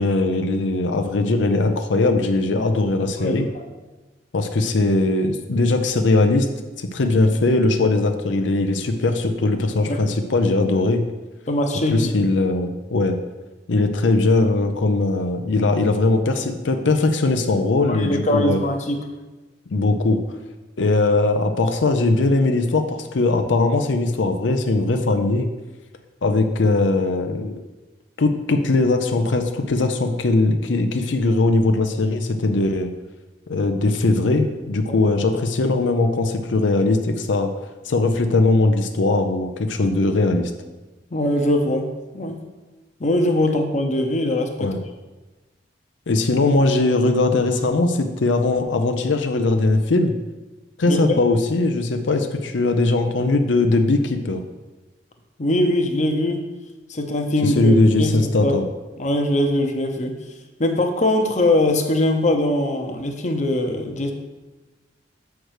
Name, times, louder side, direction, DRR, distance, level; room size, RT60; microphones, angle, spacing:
voice 1, 0.0-3.5 4.3-6.5 6.8-11.0 11.9-13.2 13.7-18.6 19.7-20.2 20.8-25.5 26.2-27.6 28.2-32.9 33.5-37.5 37.8-40.5 44.6-44.8 46.1-50.1 50.8-54.4 57.4-58.7, left 2 dB, 90° left, 6 dB, 0.6 m, -20 dB
voice 2, 11.5-12.1 17.8-19.0 34.8-35.0 41.1-41.9 42.1-42.4 43.0-44.7 50.9-51.2 55.4-56.4 56.9-58.2 58.4-58.5 59.0-60.2 60.6-64.1, left 1 dB, 40° left, 4 dB, 0.8 m, -21 dB
6.5 x 4.7 x 6.4 m, 1.2 s
head